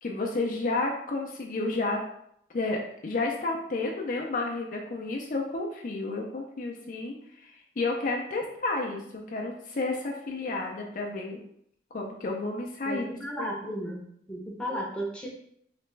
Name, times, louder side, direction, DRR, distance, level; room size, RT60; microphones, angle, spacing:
voice 1, 0.0-2.0 2.5-11.4 11.9-13.1 13.4-13.5, left 2 dB, 45° left, 0 dB, 0.4 m, -31 dB
voice 2, 12.8-14.0 14.3-15.3, equal, 5° left, -3 dB, 0.7 m, -34 dB
3.2 x 3.0 x 3.2 m, 0.72 s
head